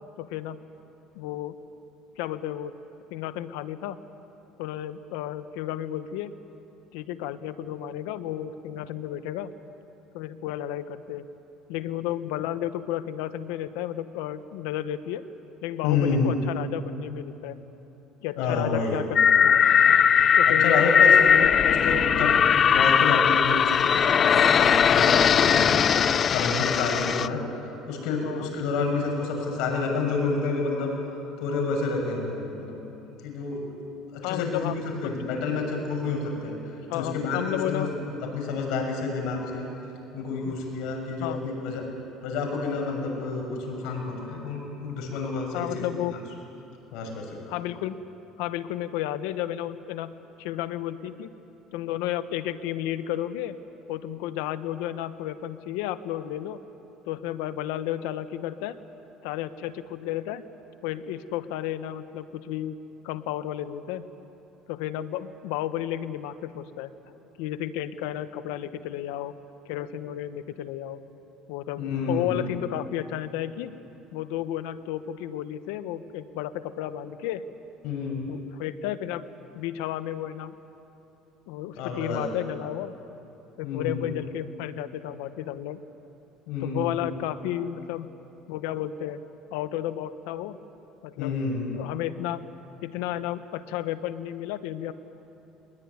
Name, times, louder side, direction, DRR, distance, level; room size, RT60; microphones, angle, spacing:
voice 1, 0.2-0.6 1.1-1.6 2.2-2.7 3.1-4.0 4.6-6.3 6.9-9.5 10.1-11.3 11.7-15.2 15.6-17.6 18.2-19.6 20.4-20.9 21.2-21.5 24.6-24.7 28.2-28.5 34.2-34.7 35.0-35.3 36.9-37.9 40.4-40.6 41.2-41.4 45.5-46.1 47.5-48.0 48.4-50.1 50.4-51.3 51.7-53.6 53.9-56.6 57.1-58.7 59.2-60.4 60.8-62.8 63.0-64.1 64.7-66.9 67.4-69.3 69.7-71.0 71.5-71.8 72.1-73.7 74.1-77.4 78.3-79.3 79.5-80.6 81.5-82.9 83.6-85.8 86.6-88.1 88.5-89.2 89.5-90.6 91.0-91.3 91.7-92.5 92.8-94.9, left 12 dB, 90° left, 12 dB, 1.1 m, -32 dB
voice 2, 15.8-16.3 18.4-19.0 20.5-21.2 21.6-30.9 31.4-32.7 33.2-33.8 34.1-36.6 36.9-37.8 38.3-39.7 40.1-41.8 42.2-46.2 46.9-47.5 71.8-72.5 77.8-78.2 81.8-82.3 83.6-84.1 86.5-87.1 91.2-91.7, left 4 dB, 75° left, 1 dB, 6.6 m, -29 dB
sound 1, 19.1-27.3, left 7 dB, 35° left, 0.5 m, -19 dB
22.5 x 21.0 x 9.7 m, 3.0 s
cardioid pair, 130°, 0 cm